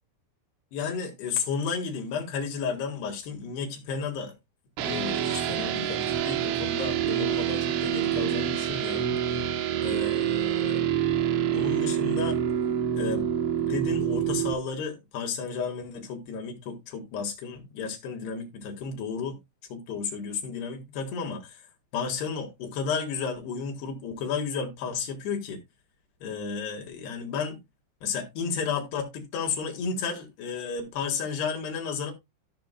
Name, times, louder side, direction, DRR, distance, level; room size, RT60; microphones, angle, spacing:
voice 1, 0.7-4.3 4.8-9.1 9.8-10.8 11.5-12.4 12.9-13.3 13.6-19.4 19.7-21.6 21.9-25.6 26.2-27.6 28.0-32.1, left 5 dB, 65° left, 3.5 m, -32 dB
sound 1, 4.8-14.5, right 10 dB, 85° right, 3.5 m, -27 dB
14.5 x 5.9 x 2.2 m
omnidirectional pair, 5.5 m